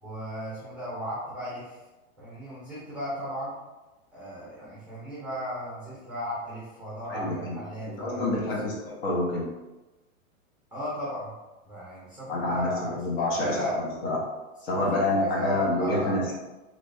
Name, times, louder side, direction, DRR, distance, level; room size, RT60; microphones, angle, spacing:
voice 1, 0.0-1.8 2.2-3.5 4.1-8.7 10.7-11.3 11.6-13.8 14.7-16.3, equal, 5° right, -9 dB, 0.7 m, -35 dB
voice 2, 7.1-7.6 7.9-9.5 12.3-14.2 14.6-16.3, left 2 dB, 45° left, -3 dB, 1.0 m, -27 dB
3.1 x 3.0 x 2.6 m, 1.1 s
hypercardioid pair, 145°, 43 cm